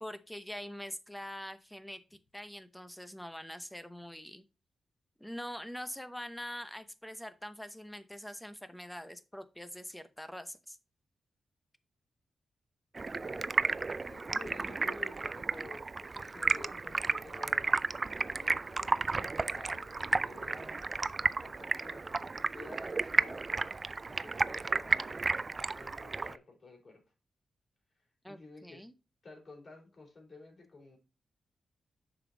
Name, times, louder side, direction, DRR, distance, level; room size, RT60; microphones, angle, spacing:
voice 1, 0.0-4.4 5.2-10.8 28.2-28.9, equal, 5° left, 11 dB, 0.8 m, -44 dB
Stream, 12.9-26.4, right 3 dB, 35° right, 0.3 m, -33 dB
voice 2, 13.1-17.7 18.3-20.9 21.4-23.5 24.0-27.0 28.3-28.8 29.2-31.0, left 2 dB, 45° left, 1 dB, 3.6 m, -52 dB
6.8 x 5.2 x 3.8 m, 0.29 s
cardioid pair, 90°, 0 cm